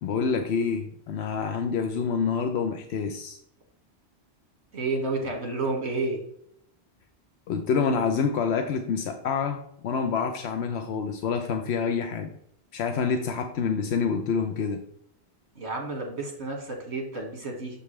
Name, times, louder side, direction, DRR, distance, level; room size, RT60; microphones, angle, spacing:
voice 1, 0.0-3.4 7.5-12.3 12.7-14.8, left 5 dB, 80° left, 6 dB, 0.9 m, -27 dB
voice 2, 4.7-6.2 15.6-17.8, right 3 dB, 80° right, 1 dB, 2.0 m, -30 dB
6.9 x 5.3 x 3.2 m, 0.71 s
omnidirectional pair, 1.1 m